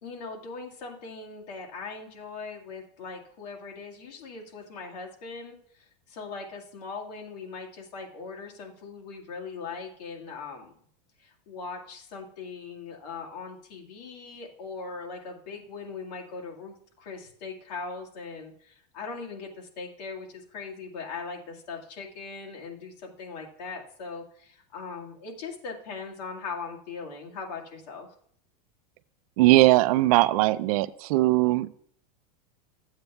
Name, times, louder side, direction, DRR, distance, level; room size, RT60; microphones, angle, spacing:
voice 1, 0.0-10.7 11.2-28.1, left 4 dB, 80° left, 0 dB, 1.9 m, -40 dB
voice 2, 29.4-31.8, right 18 dB, 60° right, 16 dB, 0.4 m, -20 dB
13.5 x 8.0 x 2.3 m, 0.63 s
supercardioid pair, 145°, 21 cm